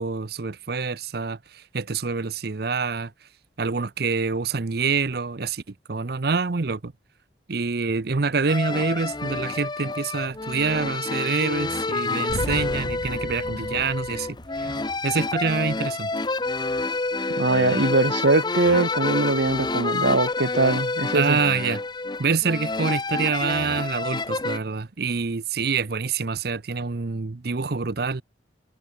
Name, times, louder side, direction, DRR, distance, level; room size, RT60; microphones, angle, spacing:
voice 1, 0.0-3.1 3.6-5.6 5.9-6.9 7.5-14.3 14.6-16.1 21.1-21.8 22.2-28.2, right 4 dB, 55° right, 0.7 m, -26 dB
sound 1, 8.5-24.6, left 3 dB, 25° left, 0.8 m, -28 dB
sound 2, 12.3-17.1, left 1 dB, 75° left, 5.0 m, -37 dB
voice 2, 17.4-21.4, right 2 dB, 80° right, 1.6 m, -22 dB
head